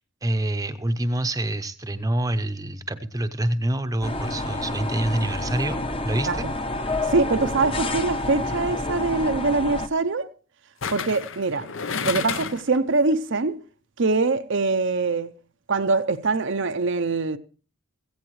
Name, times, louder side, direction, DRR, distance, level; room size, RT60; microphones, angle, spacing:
voice 1, 0.2-6.4, right 1 dB, 15° right, 0.8 m, -26 dB
sound 1, 4.0-9.9, left 2 dB, 25° left, 0.9 m, -28 dB
voice 2, 7.1-10.3 10.9-11.7 12.0-13.6 14.0-15.3 15.7-17.4, right 3 dB, 55° right, 0.7 m, -23 dB
sound 2, 8.2-8.5 10.8-12.8 13.1-13.2, left 6 dB, 60° left, 0.8 m, -31 dB
16.5 x 15.5 x 3.2 m
head